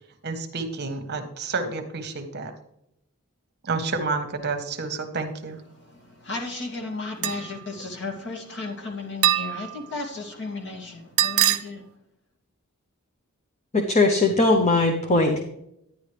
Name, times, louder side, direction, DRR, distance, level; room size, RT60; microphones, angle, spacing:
voice 1, 0.2-2.5 3.6-5.6, right 3 dB, 50° right, 7 dB, 1.2 m, -29 dB
voice 2, 5.7-11.9, left 3 dB, 55° left, 1 dB, 2.5 m, -34 dB
sound 1, 7.2-7.6 9.2-9.8 11.2-11.6, right 12 dB, 70° right, 0.6 m, -22 dB
voice 3, 13.7-15.4, left 2 dB, 35° left, 4 dB, 0.9 m, -20 dB
10.5 x 10.0 x 3.3 m, 0.80 s
head